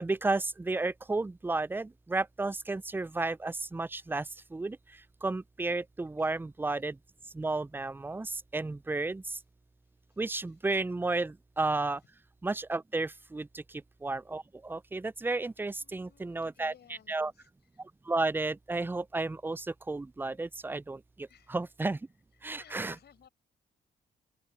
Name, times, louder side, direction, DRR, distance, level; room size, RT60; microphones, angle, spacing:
voice 1, 0.0-4.3 4.5-4.8 5.2-7.0 7.3-9.2 10.2-12.0 12.4-13.6 14.0-17.3 18.1-22.0 22.4-22.9, right 3 dB, 10° right, 0.3 m, -32 dB
voice 2, 15.8-17.5 17.7-17.8 21.3-21.6 22.6-23.3, left 9 dB, 75° left, 5.5 m, -59 dB
open air
cardioid pair, 65°, 17 cm